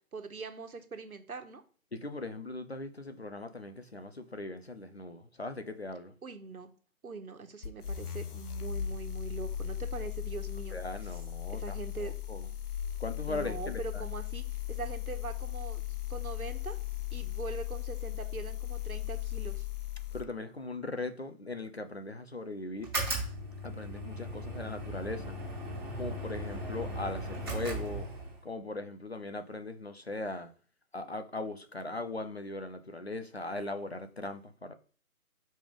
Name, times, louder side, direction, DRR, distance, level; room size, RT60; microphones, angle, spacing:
voice 1, 0.1-1.6 6.2-6.7 7.0-10.8 11.1-11.2 11.5-12.1 13.3-15.8 16.1-16.8 17.1-19.7, right 4 dB, 70° right, 1.5 m, -42 dB
voice 2, 1.9-6.1 10.7-12.5 13.0-14.0 20.1-22.9 23.6-25.4 26.0-28.1 28.4-30.5 30.9-34.7, left 2 dB, 45° left, 0.6 m, -39 dB
sound 1, 7.6-20.3, left 12 dB, 85° left, 0.9 m, -37 dB
sound 2, 22.8-28.4, right 1 dB, 15° right, 2.0 m, -37 dB
5.2 x 5.2 x 3.6 m
hypercardioid pair, 180°, 44 cm